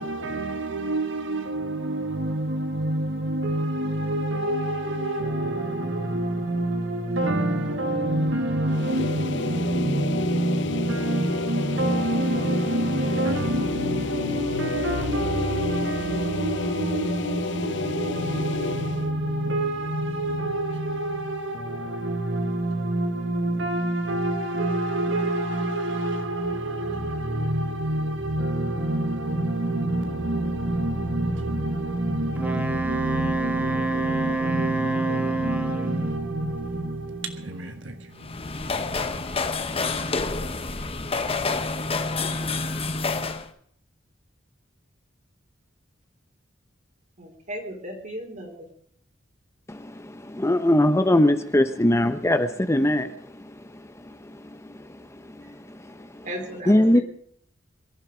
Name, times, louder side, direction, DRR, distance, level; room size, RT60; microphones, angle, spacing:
voice 1, 0.0-38.3, right 1 dB, 75° right, 1.4 m, -27 dB
sound 1, 8.7-19.1, left 4 dB, 70° left, 0.8 m, -31 dB
Wind instrument woodwind instrument, 32.4-36.1, right 3 dB, 10° right, 1.4 m, -27 dB
sound 2, 38.1-43.5, left 3 dB, 30° left, 1.2 m, -28 dB
voice 2, 47.2-48.7 56.2-57.0, equal, 40° right, 3.9 m, -36 dB
voice 3, 49.7-53.1 53.4-53.5 54.1-54.2 56.0-56.1 56.7-57.0, left 1 dB, 15° left, 0.9 m, -20 dB
23.0 x 11.5 x 5.1 m
head